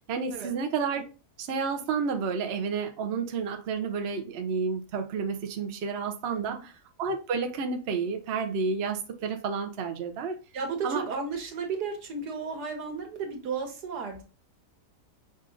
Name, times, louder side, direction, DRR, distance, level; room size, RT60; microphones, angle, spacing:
voice 1, 0.1-1.0 1.4-6.7 7.0-10.4 10.8-11.0, right 5 dB, 55° right, 0.8 m, -30 dB
voice 2, 6.3-6.6 10.5-14.2, right 5 dB, 85° right, 1.7 m, -34 dB
5.4 x 2.5 x 3.8 m
omnidirectional pair, 1.7 m